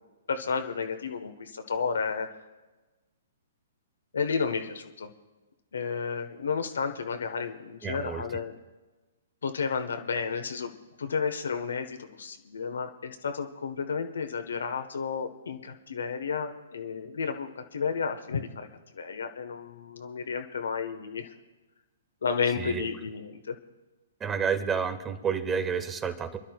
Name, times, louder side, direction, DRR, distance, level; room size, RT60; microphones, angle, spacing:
voice 1, 0.3-2.3 4.1-5.1 5.7-8.6 9.4-10.7 11.0-18.7 18.9-21.3 22.2-23.6, left 5 dB, 70° left, 7 dB, 1.2 m, -32 dB
voice 2, 7.8-8.2 22.6-22.8 24.2-26.4, right 6 dB, 15° right, 10 dB, 1.1 m, -30 dB
29.0 x 12.0 x 2.4 m, 1.2 s
figure-of-eight pair, 120°, 0 cm